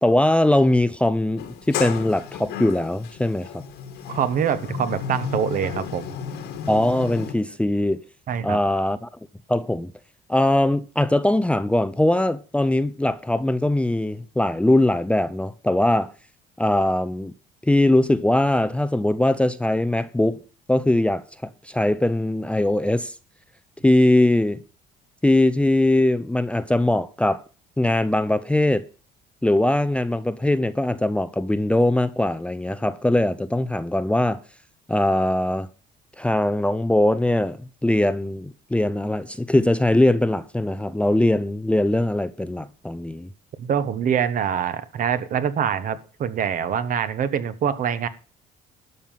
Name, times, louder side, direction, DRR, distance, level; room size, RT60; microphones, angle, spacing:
voice 1, 0.0-3.6 6.7-8.0 8.4-9.1 9.5-9.9 10.3-16.1 16.6-17.3 17.6-20.4 20.7-23.1 23.8-24.6 25.2-27.4 27.8-28.8 29.4-34.4 34.9-35.7 36.2-43.3, left 1 dB, 5° left, 0.6 m, -21 dB
Sliding door, 1.4-7.3, left 7 dB, 85° left, 2.4 m, -33 dB
voice 2, 4.1-6.1 8.3-8.6 43.6-48.1, right 8 dB, 55° right, 1.1 m, -24 dB
12.0 x 5.6 x 7.4 m
cardioid pair, 110°, 17 cm